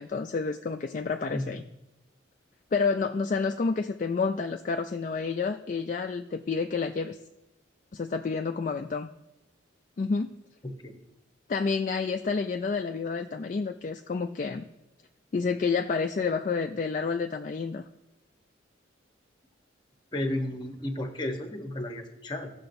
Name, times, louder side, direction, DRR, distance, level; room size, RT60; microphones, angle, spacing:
voice 1, 0.0-1.6 2.7-7.2 7.9-9.1 10.0-10.3 11.5-14.6 15.3-17.8, left 4 dB, 40° left, 5 dB, 0.3 m, -29 dB
voice 2, 20.1-22.5, left 1 dB, 25° left, 4 dB, 0.9 m, -33 dB
15.5 x 6.7 x 2.6 m, 0.93 s
head